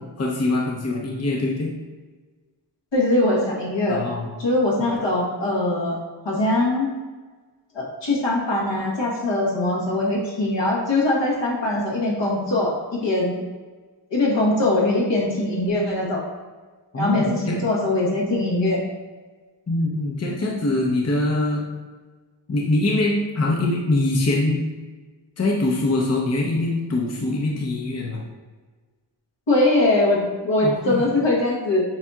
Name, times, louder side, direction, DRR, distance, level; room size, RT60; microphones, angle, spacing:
voice 1, 0.2-1.7 3.9-4.3 4.8-4.9 16.9-17.6 19.7-21.6 22.5-24.6 25.4-28.2 30.6-31.1, left 2 dB, 35° left, -2 dB, 0.8 m, -23 dB
voice 2, 2.9-4.0 4.4-6.0 6.2-6.9 7.7-13.4 14.1-16.2 17.0-18.8 29.5-31.8, left 2 dB, 70° left, -4 dB, 1.3 m, -22 dB
7.2 x 2.7 x 2.3 m, 1.4 s
wide cardioid pair, 60°, 44 cm